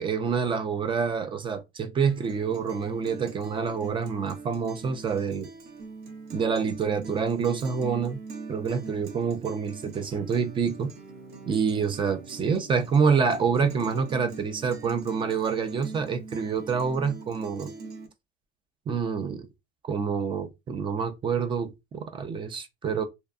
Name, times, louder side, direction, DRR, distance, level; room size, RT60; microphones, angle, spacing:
voice 1, 0.0-5.5 6.3-8.2 8.5-10.9 11.5-17.7 18.9-19.5 19.8-23.0, right 6 dB, 25° right, 0.3 m, -27 dB
Guitar, 2.1-18.1, right 4 dB, 50° right, 0.8 m, -43 dB
2.7 x 2.1 x 2.3 m
cardioid pair, 140°, 20 cm